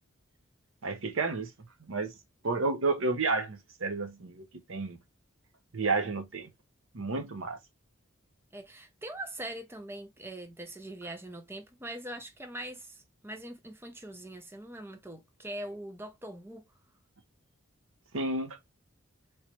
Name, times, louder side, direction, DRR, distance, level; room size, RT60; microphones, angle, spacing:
voice 1, 0.8-1.5 1.9-2.1 2.4-5.0 5.7-6.5 6.9-7.6 18.1-18.6, right 3 dB, 80° right, 0.8 m, -31 dB
voice 2, 8.5-16.6, right 1 dB, 10° right, 0.6 m, -42 dB
3.1 x 3.0 x 3.0 m
head